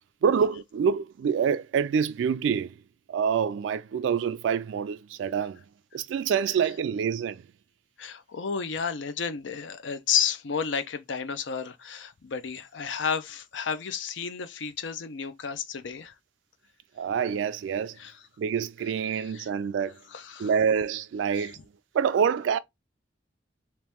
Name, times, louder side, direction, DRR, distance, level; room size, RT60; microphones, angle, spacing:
voice 1, 0.2-2.7 3.1-5.6 5.9-7.4 17.0-18.0 18.4-20.0 20.4-21.6 21.9-22.6, right 7 dB, 85° right, 0.3 m, -26 dB
voice 2, 8.0-16.1 18.0-18.2 19.1-19.5 20.1-20.5 21.3-21.5, left 7 dB, 90° left, 0.6 m, -32 dB
3.0 x 2.9 x 3.4 m
head